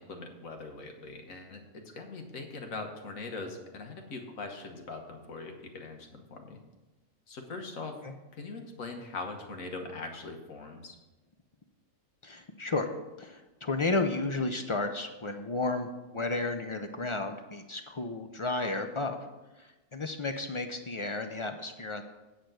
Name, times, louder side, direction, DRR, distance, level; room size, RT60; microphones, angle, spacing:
voice 1, 0.0-6.6 7.3-8.0 8.4-11.0, left 3 dB, 85° left, 4 dB, 1.6 m, -41 dB
voice 2, 12.2-19.2 19.6-22.0, left 3 dB, 50° left, 6 dB, 0.3 m, -33 dB
8.8 x 5.0 x 7.7 m, 1.1 s
omnidirectional pair, 1.4 m